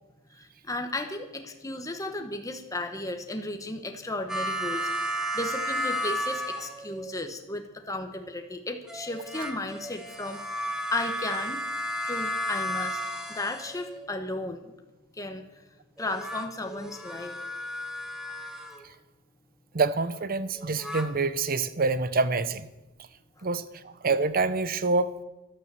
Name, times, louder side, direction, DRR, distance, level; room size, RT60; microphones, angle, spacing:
voice 1, 0.4-11.6 12.1-13.0 13.3-14.7 15.2-15.4 16.0-17.4, left 2 dB, 15° left, 1.1 m, -34 dB
sound 1, 4.3-7.1 8.9-14.1 16.0-18.8 20.6-21.1, equal, 5° right, 1.5 m, -33 dB
voice 2, 19.7-22.7 23.4-25.2, right 3 dB, 45° right, 0.7 m, -26 dB
13.0 x 12.0 x 6.9 m
head